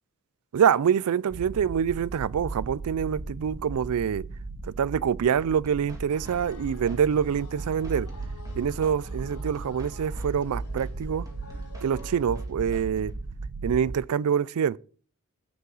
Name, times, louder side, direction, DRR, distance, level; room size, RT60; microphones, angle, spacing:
voice 1, 0.5-4.3 4.6-8.1 8.5-11.3 11.8-13.1 13.6-14.8, right 8 dB, 80° right, 0.4 m, -25 dB
sound 1, 1.3-14.0, right 3 dB, 65° right, 0.8 m, -37 dB
sound 2, 5.4-13.2, equal, 15° right, 2.2 m, -52 dB
sound 3, 6.1-12.5, left 5 dB, 80° left, 0.8 m, -50 dB
15.5 x 5.5 x 3.9 m
head